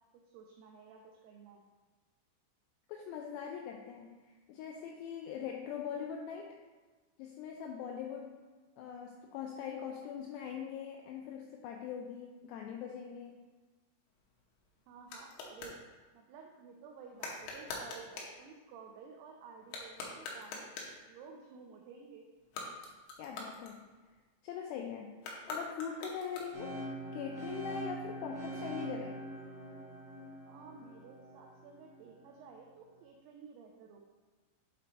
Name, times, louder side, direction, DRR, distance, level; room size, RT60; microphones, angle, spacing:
voice 1, 0.3-1.6 14.9-15.8 16.1-20.7 21.1-22.2 30.5-34.0, right 5 dB, 90° right, 1 dB, 2.3 m, -53 dB
voice 2, 2.9-6.6 7.2-8.3 8.8-13.4 23.2-23.9 24.4-25.1 25.5-26.8 27.1-29.2, left 7 dB, 90° left, 1 dB, 2.4 m, -42 dB
sound 1, 14.1-15.8 17.2-18.4 19.6-21.0 22.4-24.2 25.2-26.8, left 3 dB, 75° left, 2.6 m, -44 dB
sound 2, 26.5-32.5, right 1 dB, 60° right, 1.8 m, -44 dB
7.5 x 4.3 x 4.0 m, 1.3 s
omnidirectional pair, 5.3 m